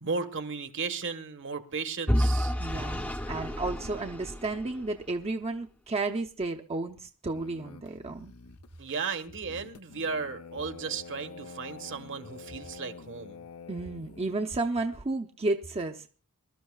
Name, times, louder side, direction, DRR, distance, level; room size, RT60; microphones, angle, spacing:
voice 1, 0.0-2.5 8.8-13.4, right 5 dB, 60° right, 8 dB, 1.2 m, -35 dB
Vehicle / Engine, 2.1-5.1, equal, 5° left, 0.7 m, -30 dB
voice 2, 2.6-8.3 13.7-16.1, right 2 dB, 30° right, 3 dB, 0.7 m, -32 dB
sound 1, 7.3-14.4, left 4 dB, 80° left, 0.8 m, -47 dB
24.5 x 12.5 x 2.3 m, 0.37 s
head